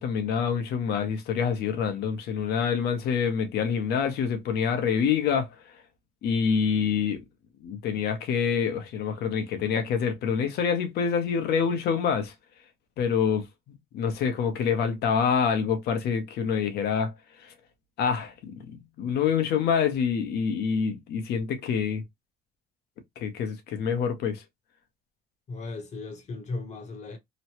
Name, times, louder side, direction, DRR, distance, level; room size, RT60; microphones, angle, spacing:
voice 1, 0.0-5.6 6.2-7.2 7.6-12.3 13.0-17.1 17.4-17.5 18.0-22.0 23.2-24.4, left 7 dB, 75° left, 0.8 m, -26 dB
voice 2, 25.5-27.2, left 3 dB, 45° left, 0.9 m, -36 dB
3.0 x 2.1 x 2.9 m
cardioid pair, 110°, 17 cm